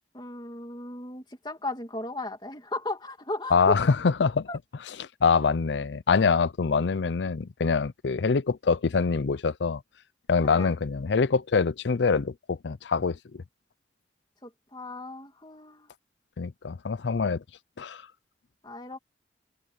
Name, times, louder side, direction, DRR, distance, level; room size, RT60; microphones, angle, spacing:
voice 1, 0.1-3.8 4.5-4.6 10.4-10.7 14.4-15.9 18.6-19.0, left 2 dB, 25° left, 2.5 m, -36 dB
voice 2, 3.5-4.5 5.0-9.8 10.3-13.2 16.4-17.4 17.8-18.0, left 5 dB, 85° left, 0.5 m, -24 dB
open air
head